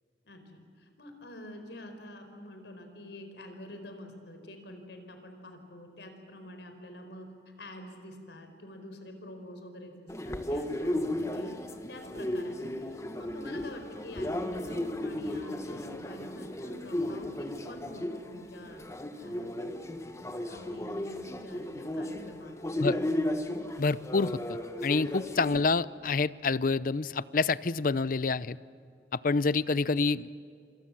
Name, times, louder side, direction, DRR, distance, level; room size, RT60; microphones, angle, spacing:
voice 1, 0.2-7.3 7.6-9.9 10.2-11.6 11.9-18.9 19.2-19.5 20.4-23.6, left 1 dB, 80° left, 6 dB, 4.5 m, -47 dB
sound 1, 10.1-25.6, left 1 dB, 15° left, 1.4 m, -35 dB
voice 2, 23.8-28.6 29.1-30.4, left 4 dB, 50° left, 18 dB, 0.6 m, -28 dB
27.0 x 26.0 x 7.5 m, 2.4 s
head